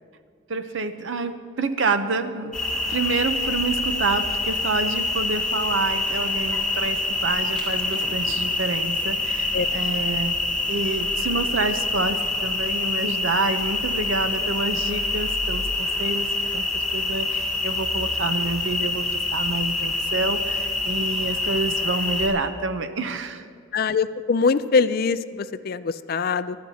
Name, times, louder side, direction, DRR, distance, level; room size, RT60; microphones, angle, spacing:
voice 1, 0.5-2.5 2.9-10.4 10.7-16.3 16.5-23.4, right 3 dB, 75° right, 9 dB, 0.7 m, -28 dB
sound 1, 2.5-22.3, left 2 dB, 5° left, 2.1 m, -26 dB
voice 2, 23.7-26.6, left 5 dB, 50° left, 14 dB, 0.4 m, -23 dB
24.0 x 12.5 x 2.8 m, 2.2 s
head